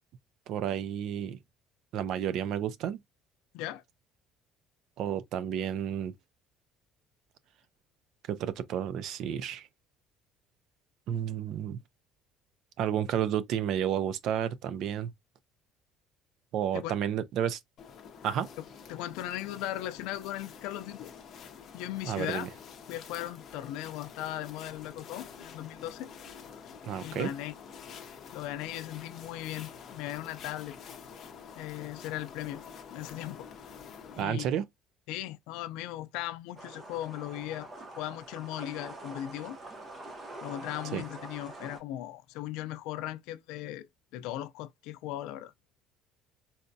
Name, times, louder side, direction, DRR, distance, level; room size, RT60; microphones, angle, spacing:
voice 1, 0.5-1.4 1.9-3.0 5.0-6.1 8.3-9.7 11.1-11.8 12.8-15.1 16.5-17.6 18.2-18.5 22.0-22.5 26.8-27.3 34.2-34.7 40.9-41.0, right 9 dB, 55° right, 0.4 m, -31 dB
sound 1, 17.8-34.2, left 6 dB, 40° left, 0.7 m, -48 dB
voice 2, 18.9-21.1 21.7-22.5 22.9-26.1 26.5-26.6 27.0-27.5 28.3-30.8 31.5-32.6 32.9-33.5 34.2-34.5 35.1-37.7 38.0-39.6 40.4-43.9 44.1-45.5, left 14 dB, 90° left, 0.4 m, -38 dB
sound 2, 36.6-41.8, right 2 dB, 25° right, 0.7 m, -45 dB
4.0 x 2.2 x 2.7 m
cardioid pair, 175°, 0 cm